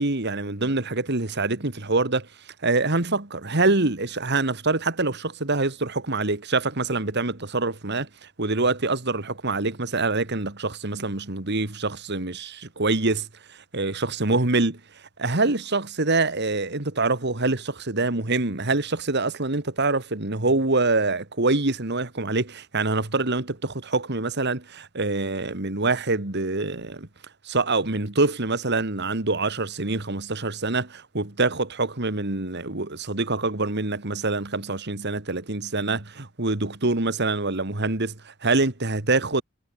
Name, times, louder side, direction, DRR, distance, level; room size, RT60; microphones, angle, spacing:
voice 1, 0.0-14.8 15.2-27.1 27.4-39.4, right 3 dB, 55° right, 2.3 m, -25 dB
head